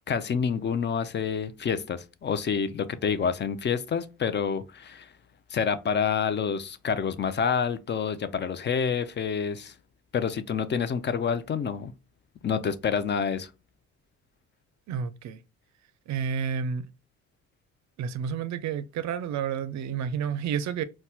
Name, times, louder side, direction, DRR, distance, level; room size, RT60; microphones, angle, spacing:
voice 1, 0.1-5.1 5.5-9.7 10.1-11.9 12.4-13.5, left 6 dB, 35° left, 0.4 m, -28 dB
voice 2, 14.9-15.4 16.1-16.9 18.0-20.8, right 7 dB, 70° right, 0.5 m, -30 dB
4.2 x 2.2 x 2.2 m
cardioid pair, 90°, 30 cm